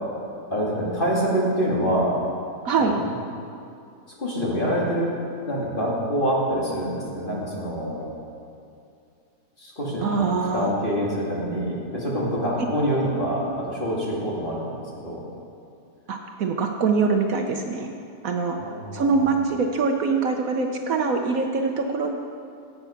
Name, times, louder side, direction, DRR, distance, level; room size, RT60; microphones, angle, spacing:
voice 1, 0.5-2.3 2.8-2.9 4.2-5.1 5.5-8.2 9.6-15.3 18.6-19.3, equal, 30° left, -5 dB, 2.4 m, -26 dB
voice 2, 10.0-10.7 16.1-17.9 18.2-18.6 18.9-22.1, right 4 dB, 65° right, 3 dB, 1.2 m, -23 dB
15.0 x 8.0 x 5.8 m, 2.4 s
omnidirectional pair, 1.7 m